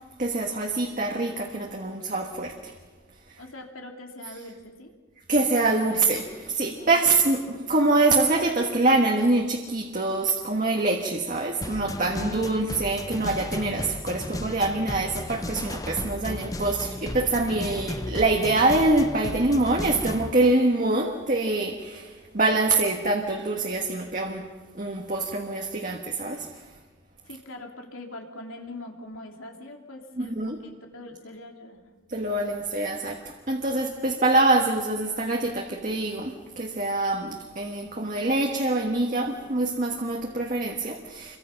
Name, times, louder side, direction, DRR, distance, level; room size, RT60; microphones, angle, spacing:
voice 1, 0.2-2.7 5.3-24.5 24.7-26.6 30.2-30.6 32.1-41.4, right 2 dB, 40° right, 1 dB, 1.5 m, -25 dB
voice 2, 3.4-4.9 6.8-6.9 12.1-12.5 18.1-18.2 27.2-31.8, left 2 dB, 90° left, 2 dB, 3.1 m, -42 dB
sound 1, 11.6-20.3, left 1 dB, 15° left, 0.7 m, -34 dB
28.0 x 24.0 x 5.9 m, 1.4 s
head